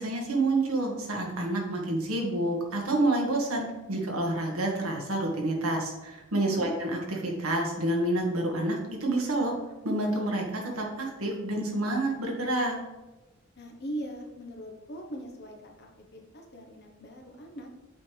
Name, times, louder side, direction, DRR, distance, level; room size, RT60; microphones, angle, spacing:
voice 1, 0.0-9.5 9.8-12.8, right 2 dB, 85° right, 0 dB, 1.7 m, -28 dB
voice 2, 6.5-6.8 13.6-17.7, right 1 dB, 50° left, 2 dB, 1.1 m, -41 dB
8.3 x 4.7 x 3.4 m, 1.1 s
head